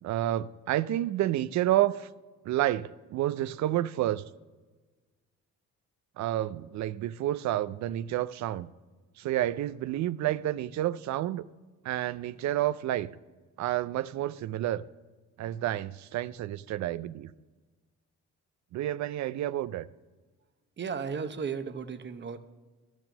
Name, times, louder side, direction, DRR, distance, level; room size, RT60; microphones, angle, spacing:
voice 1, 0.0-2.1 2.4-4.2 6.2-8.7 9.2-11.5 11.8-13.1 13.6-14.8 15.4-17.3 18.7-19.9, right 13 dB, 65° right, 0.5 m, -30 dB
voice 2, 20.8-22.4, right 6 dB, 35° right, 0.9 m, -34 dB
12.0 x 6.2 x 6.3 m
cardioid pair, 90°, 30 cm